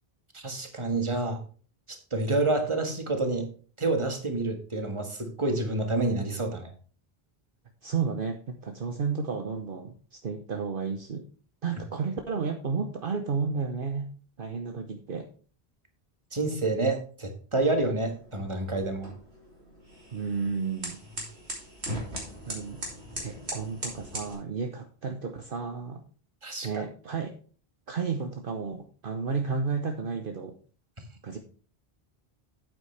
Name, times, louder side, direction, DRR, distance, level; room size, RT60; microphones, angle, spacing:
voice 1, 0.3-1.4 1.9-3.5 3.8-6.7 16.3-19.1 26.4-26.8, right 2 dB, 30° right, 5 dB, 1.6 m, -28 dB
voice 2, 7.8-11.3 11.6-14.1 14.4-15.3 20.1-21.0 22.5-22.8 23.2-26.0 26.6-27.3 27.9-30.6 31.2-31.4, right 5 dB, 60° right, 5 dB, 1.1 m, -32 dB
sound 1, 17.6-24.3, right 1 dB, 90° right, 3.3 m, -40 dB
9.2 x 8.4 x 3.3 m, 0.40 s
omnidirectional pair, 1.1 m